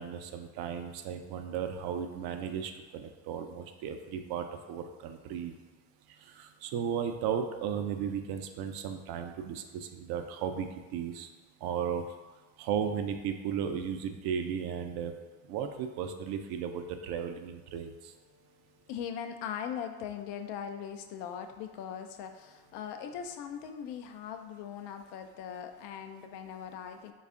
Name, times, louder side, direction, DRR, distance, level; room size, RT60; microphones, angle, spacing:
voice 1, 0.0-5.5 6.2-11.3 11.6-12.0 12.6-15.1 15.5-18.1, right 8 dB, 60° right, 7 dB, 0.5 m, -35 dB
voice 2, 18.3-18.6 18.9-27.1, left 8 dB, 65° left, 6 dB, 0.5 m, -40 dB
3.3 x 2.4 x 3.6 m, 1.3 s
supercardioid pair, 80°, 44 cm